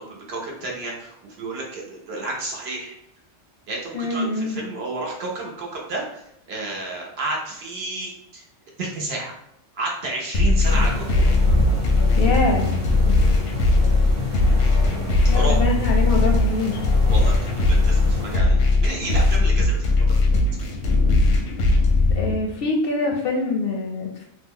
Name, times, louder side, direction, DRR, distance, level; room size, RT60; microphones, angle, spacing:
voice 1, 0.0-3.0 3.7-8.4 8.8-9.3 9.7-11.3 15.3-15.6 17.0-20.7, right 2 dB, 60° right, -2 dB, 0.9 m, -31 dB
voice 2, 3.9-4.6 12.1-12.8 15.3-16.8 22.2-24.3, left 3 dB, 60° left, 1 dB, 0.6 m, -24 dB
sound 1, 10.3-22.3, left 2 dB, 90° left, 1.0 m, -19 dB
sound 2, 10.6-18.4, left 1 dB, 25° right, 0.8 m, -29 dB
2.9 x 2.1 x 3.6 m, 0.77 s
omnidirectional pair, 1.3 m